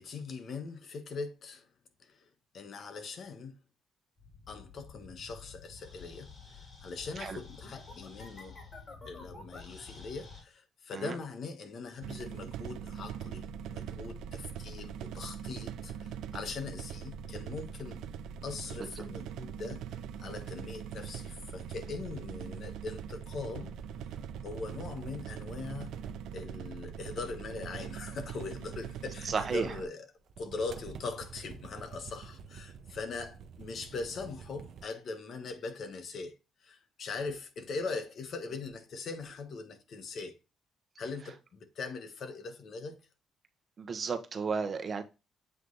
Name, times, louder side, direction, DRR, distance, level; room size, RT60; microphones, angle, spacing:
voice 1, 0.0-1.7 2.0-2.3 2.5-3.6 4.5-8.6 9.1-18.0 18.4-19.8 20.2-23.7 24.1-24.2 24.4-26.0 26.3-30.1 30.4-36.3 36.6-40.4 41.0-43.0, left 4 dB, 55° left, 1.2 m, -41 dB
sound 1, 4.2-10.4, left 4 dB, 35° left, 3.2 m, -50 dB
sound 2, 12.0-29.9, right 8 dB, 85° right, 0.3 m, -42 dB
sound 3, 21.5-29.6 30.2-34.9, right 6 dB, 70° right, 0.8 m, -50 dB
voice 2, 29.2-29.7 43.8-45.0, right 5 dB, 45° right, 1.0 m, -33 dB
7.8 x 3.1 x 3.9 m
cardioid pair, 90°, 0 cm